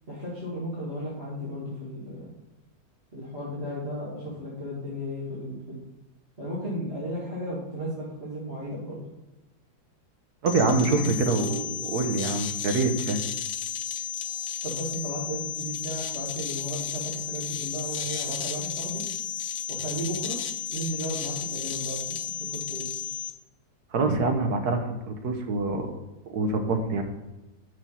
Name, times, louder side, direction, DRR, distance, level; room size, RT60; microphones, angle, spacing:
voice 1, 0.1-2.3 3.1-5.8 6.4-9.0 14.6-19.0 19.7-20.4 20.7-22.0 22.5-22.8, equal, 35° right, -7 dB, 2.2 m, -34 dB
voice 2, 10.4-13.2 23.9-25.9 26.3-27.0, right 3 dB, 60° right, 5 dB, 1.4 m, -25 dB
sound 1, 10.5-23.3, left 9 dB, 65° left, 0.7 m, -33 dB
6.1 x 6.0 x 5.6 m, 1.1 s
omnidirectional pair, 2.0 m